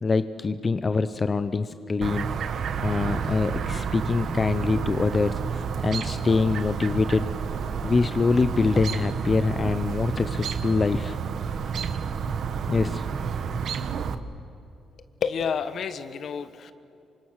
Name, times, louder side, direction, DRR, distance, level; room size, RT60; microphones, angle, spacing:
voice 1, 0.0-2.3 2.8-7.3 7.8-11.2 12.7-13.3, left 4 dB, 30° left, 11 dB, 0.7 m, -24 dB
Chirp tweet, 2.0-14.1, right 6 dB, 65° right, 1.2 m, -30 dB
voice 2, 15.2-16.7, left 6 dB, 60° left, 11 dB, 1.4 m, -29 dB
28.0 x 25.0 x 6.6 m, 2.8 s
cardioid pair, 110°, 0 cm